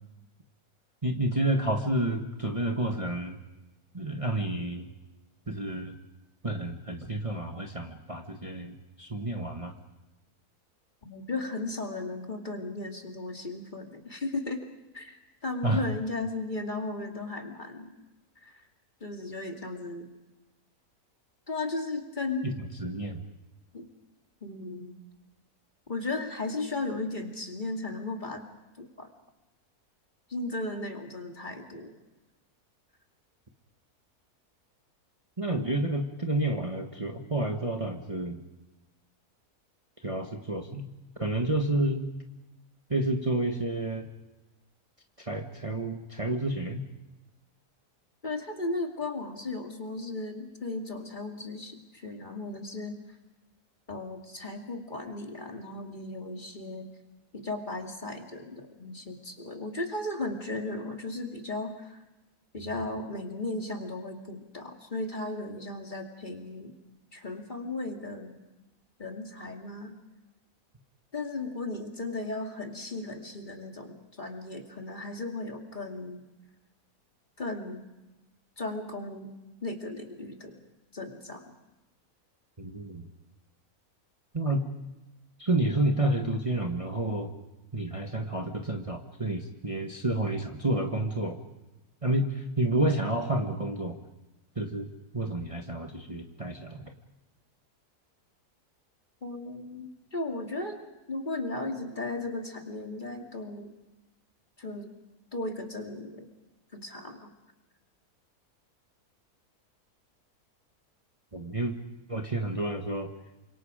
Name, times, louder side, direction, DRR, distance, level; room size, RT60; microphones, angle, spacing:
voice 1, 1.0-3.4 3.9-4.9 5.5-6.0 6.4-9.7 15.6-15.8 22.4-22.5 22.8-23.2 35.4-38.4 40.0-40.9 41.2-42.1 42.9-44.1 45.2-46.8 82.6-83.1 84.3-84.6 85.4-87.3 87.7-91.4 92.0-94.0 94.5-94.9 95.1-96.9 111.3-111.7 112.1-113.1, right 1 dB, 20° right, 2 dB, 1.6 m, -30 dB
voice 2, 11.0-14.7 14.9-15.2 15.4-18.0 18.4-18.6 19.0-20.1 21.5-22.5 23.7-23.9 24.4-25.0 25.9-28.5 28.8-29.1 30.3-32.0 48.2-53.0 53.9-56.9 57.3-62.0 62.5-66.7 67.1-68.3 69.0-70.0 71.1-76.2 77.4-77.8 78.6-79.3 79.6-80.6 80.9-81.5 84.5-84.6 99.2-103.7 104.6-104.9 105.3-106.3 106.7-107.3, left 2 dB, 30° left, 2 dB, 2.5 m, -36 dB
28.5 x 26.0 x 5.1 m, 1.0 s
omnidirectional pair, 1.6 m